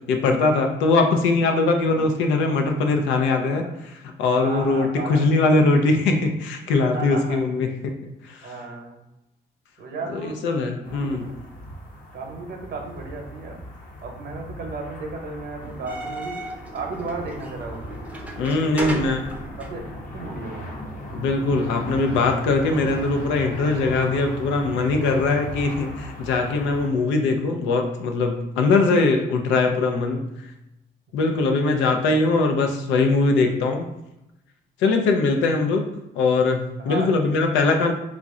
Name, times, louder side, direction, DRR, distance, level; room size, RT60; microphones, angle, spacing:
voice 1, 0.1-7.7 8.3-8.5 10.1-11.2 18.4-19.2 21.1-30.3 31.1-33.9 34.8-35.9 36.2-37.9, left 3 dB, 85° left, 4 dB, 0.5 m, -21 dB
voice 2, 4.2-5.7 6.9-7.4 8.4-9.0 9.8-10.5 10.8-11.3 12.1-13.6 14.0-16.4 16.7-18.0 18.8-19.1 19.6-19.9 20.1-20.7 28.7-28.9 36.8-37.1, right 3 dB, 60° right, 2 dB, 0.9 m, -34 dB
sound 1, 10.8-26.9, equal, 45° left, 0.9 m, -38 dB
sound 2, 15.6-20.2, right 1 dB, 5° right, 0.6 m, -35 dB
3.1 x 2.5 x 3.6 m, 0.88 s
supercardioid pair, 75°, 19 cm